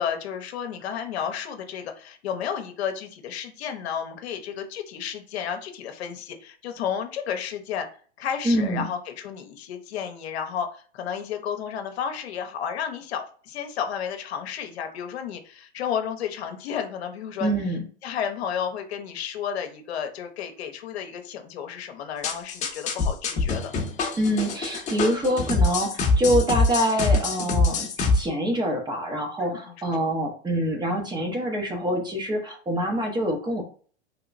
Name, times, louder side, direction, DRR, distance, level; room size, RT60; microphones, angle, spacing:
voice 1, 0.0-7.9 8.2-17.5 18.0-23.7 29.4-30.1, left 8 dB, 65° left, 5 dB, 0.9 m, -32 dB
voice 2, 8.4-8.9 17.4-17.9 24.2-27.9 28.1-33.6, equal, 10° right, 2 dB, 0.8 m, -25 dB
sound 1, 22.2-28.2, left 3 dB, 20° left, 0.9 m, -24 dB
3.3 x 2.9 x 2.5 m, 0.43 s
hypercardioid pair, 115°, 34 cm